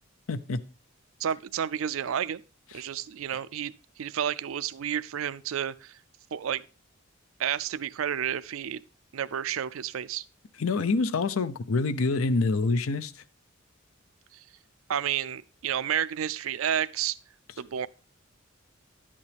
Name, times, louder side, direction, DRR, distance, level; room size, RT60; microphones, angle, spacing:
voice 1, 0.3-0.6 10.6-13.1, left 3 dB, 75° left, 0.6 m, -26 dB
voice 2, 1.2-2.4 2.7-3.7 4.0-6.0 6.3-6.6 7.4-8.8 9.1-10.2 14.3-14.4 14.9-17.2 17.6-17.9, right 9 dB, 75° right, 0.4 m, -30 dB
11.0 x 8.6 x 3.4 m
head